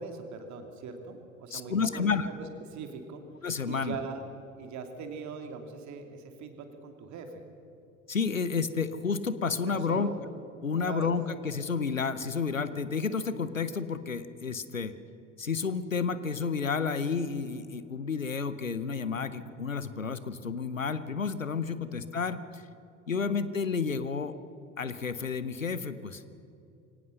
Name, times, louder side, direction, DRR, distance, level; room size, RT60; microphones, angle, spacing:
voice 1, 0.0-3.2 3.6-4.3 4.6-7.4 9.7-10.2 10.7-11.1 21.6-22.0 23.2-23.4, right 5 dB, 45° right, 6 dB, 2.8 m, -41 dB
voice 2, 1.5-2.3 3.4-4.0 8.1-10.1 10.6-14.9 15.4-22.6 23.1-24.4 24.8-26.2, left 5 dB, 90° left, 14 dB, 0.8 m, -31 dB
23.5 x 18.0 x 6.6 m, 2.7 s
figure-of-eight pair, 65°, 38 cm